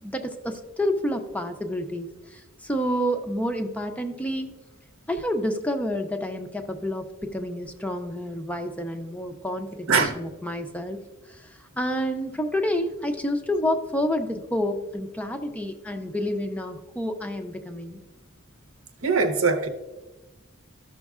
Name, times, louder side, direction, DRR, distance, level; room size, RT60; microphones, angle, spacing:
voice 1, 0.0-4.5 5.1-11.0 11.3-18.0, equal, 5° left, 0.4 m, -29 dB
voice 2, 19.0-19.7, right 4 dB, 70° right, 0.8 m, -21 dB
13.5 x 6.2 x 2.4 m
head